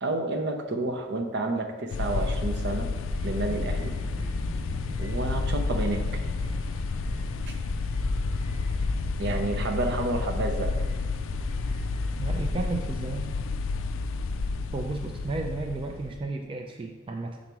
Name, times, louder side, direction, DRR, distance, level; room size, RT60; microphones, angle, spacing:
voice 1, 0.0-2.9 3.2-4.0 5.0-6.1 9.2-10.7, right 2 dB, 60° right, 5 dB, 0.7 m, -30 dB
sound 1, 1.9-16.2, left 3 dB, 70° left, 0.3 m, -30 dB
sound 2, 2.8-12.5, equal, 80° right, 1.1 m, -38 dB
voice 2, 12.2-13.3 14.7-17.4, right 3 dB, 25° right, 2 dB, 0.3 m, -33 dB
5.8 x 4.0 x 4.5 m, 1.4 s
head